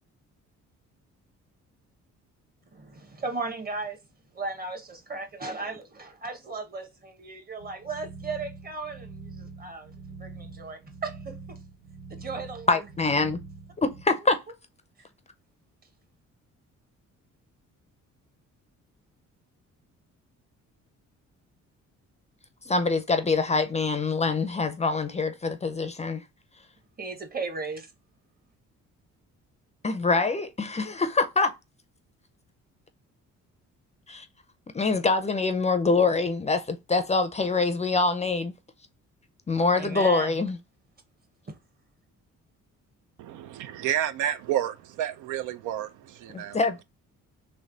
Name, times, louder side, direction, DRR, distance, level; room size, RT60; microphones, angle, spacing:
voice 1, 2.7-4.0 4.3-11.6 12.1-12.8 27.0-27.9 39.7-40.4 41.5-41.6, right 4 dB, 30° right, 1.0 m, -36 dB
sound 1, 7.6-14.0, right 4 dB, 65° right, 1.0 m, -44 dB
voice 2, 12.7-13.4 13.8-14.4 22.7-26.2 29.8-31.5 34.1-34.3 34.7-38.5 39.5-40.6 46.3-46.8, left 3 dB, 25° left, 0.5 m, -25 dB
voice 3, 43.2-46.6, right 11 dB, 85° right, 0.5 m, -30 dB
3.3 x 3.0 x 3.8 m
cardioid pair, 90°, 30 cm